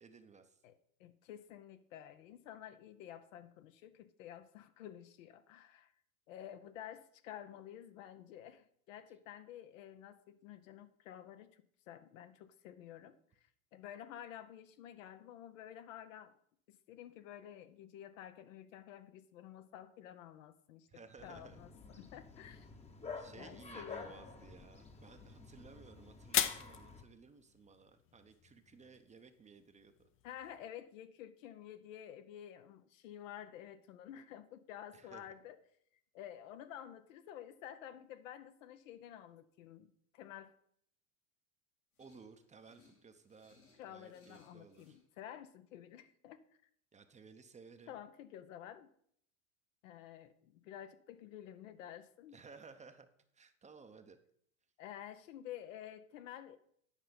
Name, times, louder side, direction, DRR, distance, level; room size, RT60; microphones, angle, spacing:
voice 1, 0.0-0.6 20.9-21.6 23.2-30.1 34.9-35.3 42.0-43.6 43.9-45.0 46.9-48.0 52.3-53.1 53.3-54.2, right 5 dB, 15° right, 0.7 m, -57 dB
voice 2, 0.6-5.9 6.3-16.4 16.7-20.9 21.2-22.7 23.3-24.3 30.2-35.6 36.1-40.5 43.8-46.4 47.9-48.9 49.8-52.4 54.8-56.6, left 10 dB, 65° left, 0.8 m, -51 dB
Bark, 21.2-27.0, left 4 dB, 15° left, 1.0 m, -50 dB
sound 1, 24.7-30.6, left 10 dB, 30° left, 0.6 m, -42 dB
sound 2, 41.9-45.0, left 4 dB, 85° left, 3.0 m, -69 dB
10.0 x 5.5 x 5.2 m
hypercardioid pair, 85°, 42 cm